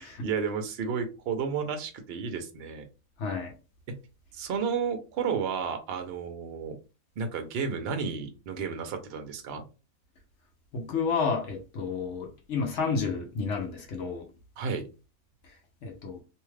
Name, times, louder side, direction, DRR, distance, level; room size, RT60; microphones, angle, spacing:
voice 1, 0.0-2.8 3.9-4.0 4.3-6.7 7.2-9.6 14.6-14.9, right 6 dB, 55° right, 0.8 m, -32 dB
voice 2, 3.2-3.5 10.7-14.2 15.8-16.2, left 5 dB, 60° left, 0.9 m, -31 dB
2.7 x 2.3 x 3.2 m
omnidirectional pair, 1.5 m